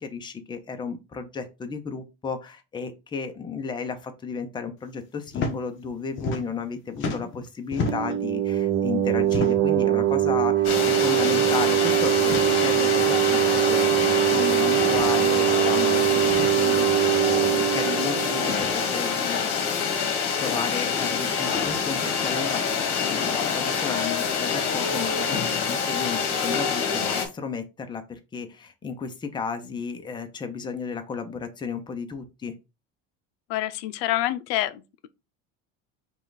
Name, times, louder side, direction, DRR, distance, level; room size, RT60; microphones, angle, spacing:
voice 1, 0.0-19.4 20.4-32.5, left 5 dB, 15° left, 0.7 m, -33 dB
sound 1, 5.3-5.5 5.8-6.7 6.9-8.2 9.2-9.8 10.7-10.9 11.2-11.3 12.2-12.5 13.6-13.7 14.9-15.2 16.2-16.5, left 3 dB, 40° left, 1.0 m, -32 dB
sound 2, 7.9-19.3, right 12 dB, 35° right, 0.6 m, -22 dB
sound 3, 10.6-27.3, left 6 dB, 60° left, 1.5 m, -26 dB
voice 2, 33.5-35.1, left 14 dB, 80° left, 0.5 m, -27 dB
5.6 x 2.4 x 3.9 m
cardioid pair, 140°, 29 cm